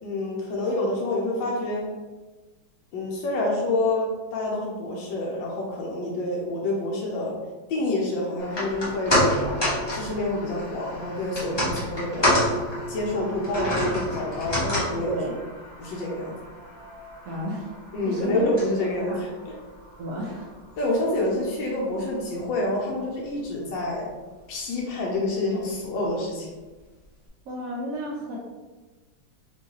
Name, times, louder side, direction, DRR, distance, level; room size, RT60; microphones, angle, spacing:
voice 1, 0.0-1.9 2.9-7.4 7.7-9.2 9.9-12.3 12.9-15.2 15.8-16.3 17.9-19.5 20.8-24.1 24.5-26.5, left 2 dB, 70° left, -3 dB, 1.3 m, -27 dB
sound 1, 8.4-20.8 21.1-21.2, equal, 40° left, 0.3 m, -29 dB
voice 2, 15.1-15.4 17.2-17.7 18.0-18.4 18.8-19.2 20.0-20.5 27.4-28.4, right 1 dB, 75° right, -4 dB, 0.8 m, -32 dB
4.5 x 2.7 x 2.9 m, 1.3 s
omnidirectional pair, 2.3 m